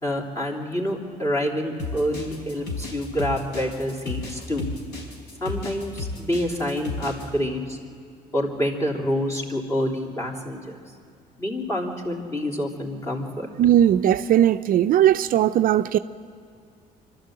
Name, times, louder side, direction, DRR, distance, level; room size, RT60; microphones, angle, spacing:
voice 1, 0.0-4.7 5.4-7.8 8.3-10.8 11.4-13.5, equal, 20° left, 3.3 m, -27 dB
sound 1, 1.8-7.3, left 3 dB, 80° left, 4.5 m, -33 dB
voice 2, 13.6-16.0, right 11 dB, 55° right, 0.5 m, -18 dB
26.0 x 13.0 x 7.7 m
cardioid pair, 110°, 17 cm